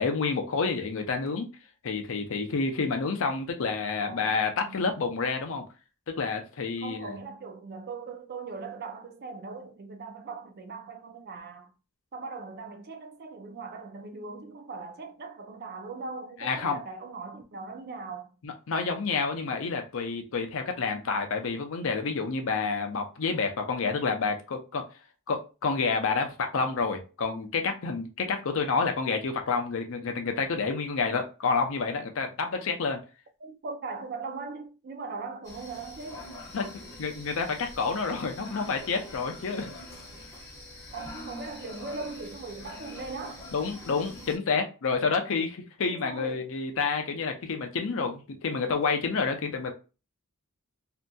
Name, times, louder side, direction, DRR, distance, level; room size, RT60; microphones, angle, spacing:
voice 1, 0.0-1.5 1.8-5.6 6.1-7.2 16.4-16.8 18.4-24.8 25.3-33.0 36.5-36.7 37.0-39.7 43.5-49.7, left 4 dB, 65° left, 0.5 m, -29 dB
voice 2, 4.0-4.8 6.8-11.7 12.1-18.3 33.4-36.3 40.9-43.4 45.9-46.5, right 4 dB, 45° right, 0.4 m, -40 dB
sound 1, 35.4-44.4, left 1 dB, 15° left, 0.9 m, -44 dB
2.8 x 2.5 x 2.2 m
head